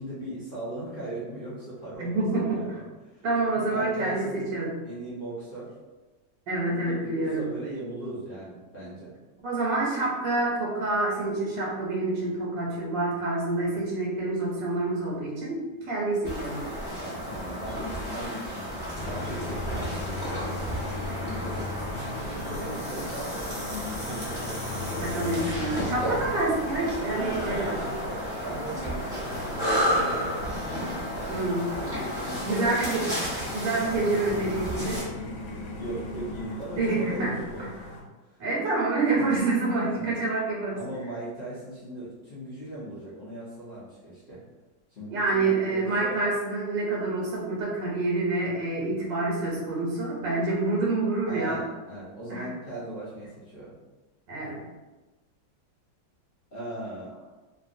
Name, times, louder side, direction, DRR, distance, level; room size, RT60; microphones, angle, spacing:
voice 1, 0.0-3.2 3.5-4.4 4.8-5.7 6.6-9.1 17.0-20.7 21.1-21.7 22.2-25.4 27.2-30.4 31.1-32.8 33.2-33.5 34.7-38.4 39.2-39.3 39.9-40.2 40.7-44.4 44.9-46.2 51.3-53.7 56.5-57.1, right 1 dB, 65° left, -9 dB, 0.5 m, -39 dB
voice 2, 2.0-2.8 3.2-4.7 6.5-7.5 9.4-16.6 24.9-27.7 31.3-31.7 32.4-33.0 33.5-35.0 36.7-37.3 37.6-37.7 38.4-40.8 45.1-51.6 52.3-52.5 54.3-54.6, right 2 dB, 85° right, -4 dB, 1.3 m, -27 dB
sound 1, 16.2-35.0, equal, 5° right, 0.6 m, -32 dB
sound 2, 18.9-38.0, left 2 dB, 80° left, 1.2 m, -39 dB
2.6 x 2.5 x 2.5 m, 1.2 s
omnidirectional pair, 1.9 m